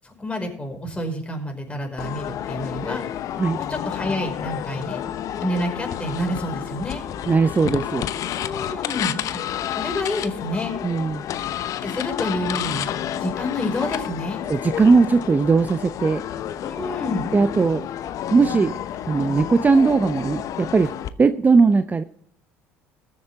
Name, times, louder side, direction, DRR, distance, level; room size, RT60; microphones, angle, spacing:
voice 1, 0.0-3.0 3.6-5.0 5.4-7.0 8.4-9.2 9.8-10.8 11.8-14.4 16.6-17.3, left 1 dB, 15° left, 2 dB, 5.2 m, -28 dB
sound 1, 2.0-21.1, left 10 dB, 55° left, 0.8 m, -30 dB
voice 2, 7.3-8.1 10.8-11.2 14.5-16.2 17.3-17.8 18.3-18.8 19.1-20.9 21.2-22.0, right 4 dB, 25° right, 11 dB, 0.7 m, -18 dB
20.5 x 8.0 x 3.6 m, 0.65 s
hypercardioid pair, 60°, 7 cm